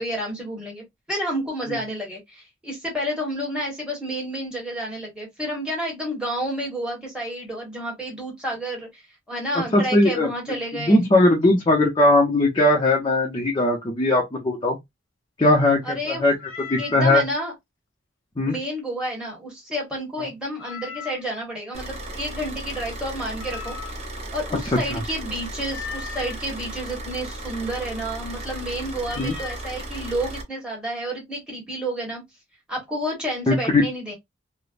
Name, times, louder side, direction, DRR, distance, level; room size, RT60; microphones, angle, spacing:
voice 1, 0.0-9.0 9.3-11.0 15.8-16.3 16.8-17.5 18.5-23.8 24.3-32.2 32.7-34.1, equal, 5° right, 1.3 m, -30 dB
voice 2, 9.5-10.3 10.7-14.8 15.4-16.3 16.7-17.2 18.4-18.6 24.9-25.0 29.2-29.3 33.5-33.8, left 1 dB, 25° left, 0.6 m, -19 dB
Meow, 16.4-17.1 20.6-21.4 23.4-24.2 25.7-26.4 29.0-29.7, left 7 dB, 70° left, 0.8 m, -38 dB
Car / Idling, 21.7-30.4, right 1 dB, 30° right, 0.6 m, -35 dB
3.2 x 2.1 x 2.4 m
head